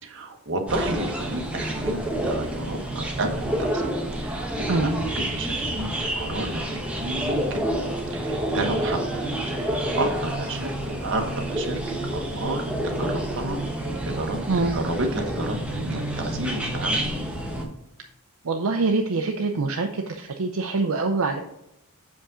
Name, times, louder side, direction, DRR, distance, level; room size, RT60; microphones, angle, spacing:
voice 1, 0.0-3.9 4.2-7.7 8.1-9.2 9.5-13.6 14.0-17.1, right 2 dB, 60° right, 3 dB, 1.2 m, -31 dB
sound 1, 0.7-17.6, right 1 dB, 5° right, 1.0 m, -28 dB
voice 2, 18.4-21.4, right 3 dB, 75° right, 4 dB, 0.6 m, -24 dB
6.8 x 5.2 x 3.7 m, 0.87 s
head